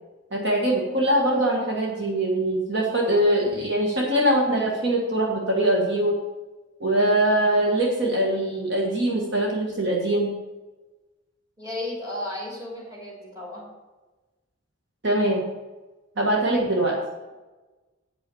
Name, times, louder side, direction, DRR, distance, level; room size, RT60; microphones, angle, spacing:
voice 1, 0.3-6.2 6.8-10.3 15.0-15.5 16.2-17.0, right 1 dB, 55° right, -1 dB, 1.4 m, -22 dB
voice 2, 11.6-13.6 16.2-16.4, left 1 dB, 20° right, -3 dB, 2.7 m, -34 dB
8.2 x 5.7 x 7.7 m, 1.2 s
head